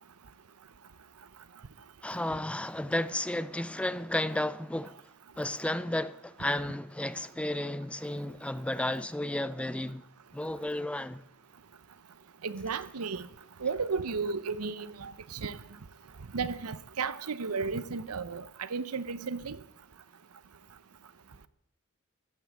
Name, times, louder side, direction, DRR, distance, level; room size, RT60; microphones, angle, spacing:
voice 1, 2.0-5.0 5.4-10.0 10.3-11.2, left 1 dB, 5° left, 0.4 m, -33 dB
voice 2, 12.4-13.3 13.6-15.6 16.3-19.6, right 5 dB, 85° right, 0.8 m, -34 dB
15.5 x 9.5 x 7.6 m
head